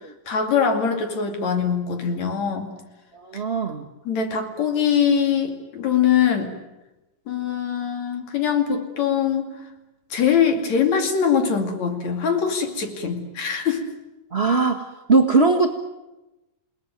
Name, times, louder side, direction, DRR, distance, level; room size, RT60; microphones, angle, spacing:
voice 1, 0.3-2.7 3.3-3.4 4.1-6.5 7.3-9.6 10.1-13.8, left 7 dB, 60° left, 6 dB, 3.8 m, -22 dB
voice 2, 3.1-3.9 14.3-15.7, right 3 dB, 35° right, 6 dB, 1.0 m, -20 dB
29.0 x 19.5 x 9.3 m, 1.0 s
omnidirectional pair, 3.6 m